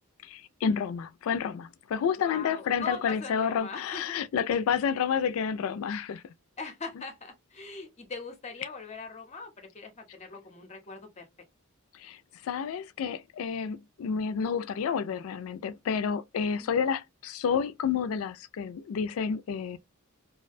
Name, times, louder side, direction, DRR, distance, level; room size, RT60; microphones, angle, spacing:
voice 1, 0.2-6.2 11.9-19.8, left 7 dB, 85° left, 0.3 m, -30 dB
voice 2, 2.2-4.2 6.6-11.3 16.6-16.8, left 4 dB, 35° left, 0.6 m, -41 dB
2.3 x 2.1 x 2.5 m
head